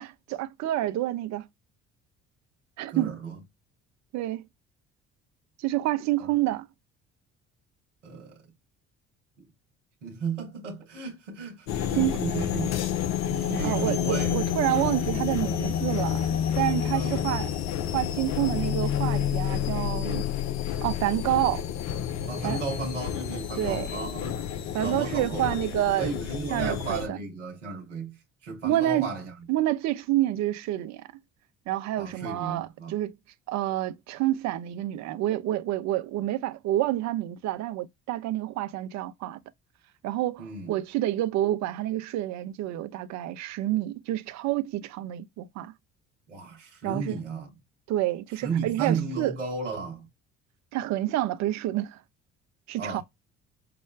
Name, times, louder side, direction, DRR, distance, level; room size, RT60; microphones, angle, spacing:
voice 1, 0.0-1.5 2.8-3.2 4.1-4.4 5.6-6.7 11.9-12.2 13.6-17.5 17.9-20.3 20.8-21.6 22.4-22.6 23.6-23.9 24.7-26.1 26.5-27.2 28.6-29.1 29.5-31.1 31.7-33.2 33.5-39.4 40.0-45.7 46.8-47.2 47.9-49.4 50.7-52.0 52.7-53.0, right 14 dB, 50° right, 0.5 m, -28 dB
voice 2, 2.9-3.3 8.0-8.4 10.0-12.8 13.3-14.6 16.9-17.2 22.3-24.4 24.8-25.5 26.0-28.2 28.4-29.3 32.0-32.9 40.4-40.7 46.3-47.5 48.4-50.1 52.8-53.0, right 4 dB, 90° right, 1.0 m, -34 dB
sound 1, 11.7-27.1, left 10 dB, 50° left, 0.6 m, -29 dB
5.7 x 2.1 x 2.3 m
hypercardioid pair, 55°, 35 cm